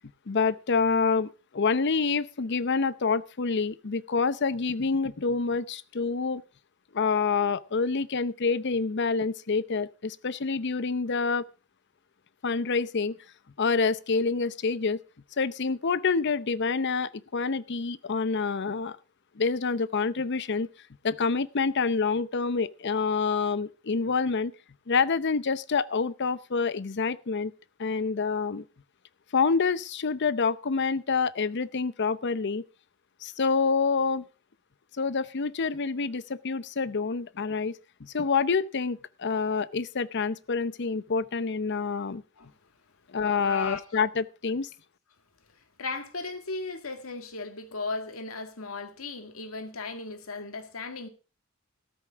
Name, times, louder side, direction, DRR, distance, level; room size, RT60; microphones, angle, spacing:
voice 1, 0.3-6.4 6.9-11.4 12.4-13.1 13.6-15.0 15.4-19.0 19.4-20.7 21.0-24.5 24.9-27.5 27.8-28.6 29.3-32.6 33.2-34.2 35.0-42.2 43.1-44.7, left 4 dB, 55° left, 0.7 m, -27 dB
voice 2, 43.4-43.8 45.8-51.1, left 3 dB, 80° left, 2.0 m, -36 dB
14.5 x 13.5 x 3.6 m
head